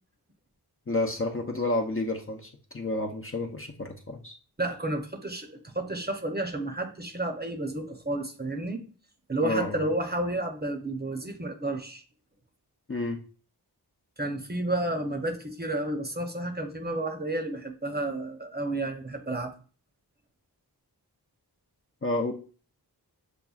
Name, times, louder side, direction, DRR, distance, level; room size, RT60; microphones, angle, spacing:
voice 1, 0.9-4.4 9.4-9.8 12.9-13.2 22.0-22.3, left 2 dB, 35° left, 2 dB, 0.5 m, -30 dB
voice 2, 4.6-8.8 9.3-12.0 14.2-19.5, right 1 dB, 25° right, 4 dB, 0.7 m, -31 dB
6.8 x 2.3 x 2.3 m, 0.38 s
wide cardioid pair, 50°, 40 cm